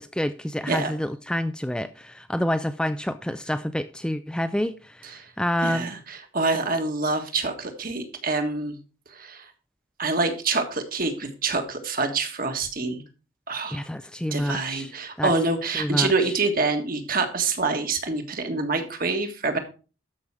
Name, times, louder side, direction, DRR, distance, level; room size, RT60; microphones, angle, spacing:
voice 1, 0.0-5.9 13.7-14.9 15.2-15.3 15.7-16.3, equal, 5° left, 0.4 m, -28 dB
voice 2, 5.6-8.8 9.1-9.5 10.0-13.0 13.5-13.9 14.3-19.6, right 3 dB, 45° right, 1.6 m, -26 dB
13.0 x 5.6 x 4.7 m
head